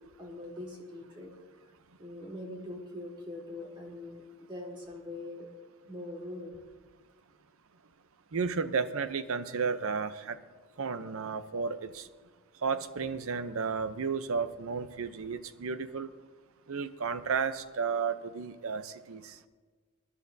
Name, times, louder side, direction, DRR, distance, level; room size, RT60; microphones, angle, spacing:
voice 1, 0.2-1.3 2.0-5.5 5.9-6.6, left 1 dB, 20° right, 0 dB, 1.9 m, -42 dB
voice 2, 8.3-10.4 10.8-12.1 12.6-16.1 16.7-19.3, right 5 dB, 70° right, 12 dB, 0.6 m, -33 dB
22.0 x 11.0 x 2.7 m, 1.4 s
head